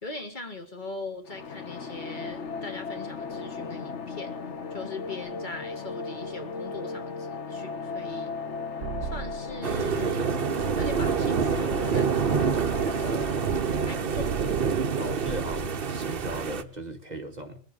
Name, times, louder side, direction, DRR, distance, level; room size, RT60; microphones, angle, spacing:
voice 1, 0.0-4.3 4.7-8.4 9.0-10.4 10.7-13.5 13.9-14.3, left 3 dB, 40° left, 4 dB, 2.0 m, -40 dB
sound 1, 1.2-16.0, left 4 dB, 75° left, 1.3 m, -37 dB
sound 2, 8.8-10.3 10.6-13.9 14.2-14.7 15.1-15.6, right 7 dB, 80° right, 1.3 m, -37 dB
sound 3, 9.6-16.6, right 6 dB, 55° right, 1.0 m, -27 dB
voice 2, 15.0-17.6, right 1 dB, 35° right, 5 dB, 1.5 m, -37 dB
20.0 x 7.9 x 6.8 m, 0.43 s
omnidirectional pair, 1.2 m